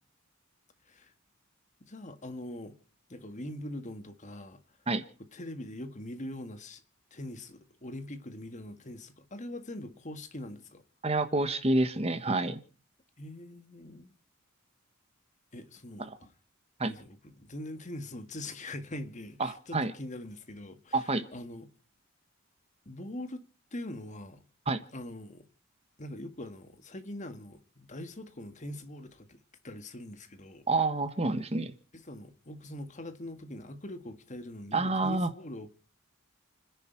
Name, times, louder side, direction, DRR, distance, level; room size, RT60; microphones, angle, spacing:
voice 1, 1.8-2.8 3.1-4.6 5.3-6.8 7.1-10.8 13.2-14.1 15.5-16.3 16.8-21.7 22.9-24.4 24.9-25.5 26.0-30.7 31.9-35.7, left 1 dB, 35° left, 1.7 m, -43 dB
voice 2, 11.0-12.6 16.8-16.9 19.4-19.9 20.9-21.2 24.7-24.8 30.7-31.7 34.7-35.3, right 2 dB, 30° right, 1.3 m, -28 dB
29.5 x 10.5 x 4.6 m
head